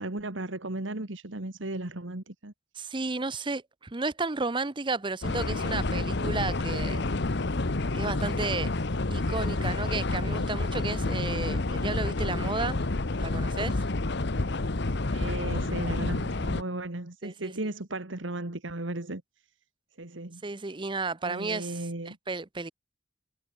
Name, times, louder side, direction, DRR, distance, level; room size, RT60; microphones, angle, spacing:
voice 1, 0.0-2.5 15.1-19.2 20.0-20.4 21.2-22.2, right 2 dB, 70° right, 2.0 m, -35 dB
voice 2, 2.7-7.0 7.9-8.7 9.1-12.8 13.2-13.8 17.2-17.5 20.4-21.8 22.1-22.7, right 3 dB, 25° right, 0.8 m, -33 dB
sound 1, 5.2-16.6, left 2 dB, 60° left, 1.1 m, -29 dB
Harp, 6.4-12.2, left 3 dB, 80° left, 4.6 m, -52 dB
head